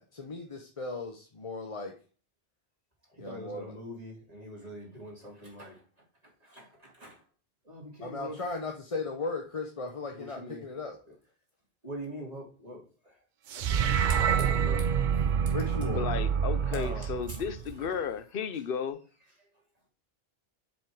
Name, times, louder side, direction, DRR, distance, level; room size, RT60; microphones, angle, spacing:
voice 1, 0.0-1.9 3.2-3.8 8.0-11.0 15.5-16.0, left 3 dB, 35° left, 0.8 m, -37 dB
voice 2, 3.2-5.8 6.4-7.2 7.6-8.4 10.2-10.6 11.8-13.1 13.7-14.0 14.4-14.9 16.7-17.1, equal, 35° right, 3.3 m, -43 dB
sound 1, 13.5-17.9, right 7 dB, 55° right, 0.6 m, -27 dB
voice 3, 15.9-19.0, left 7 dB, 60° left, 0.9 m, -34 dB
7.3 x 5.3 x 4.7 m
omnidirectional pair, 1.1 m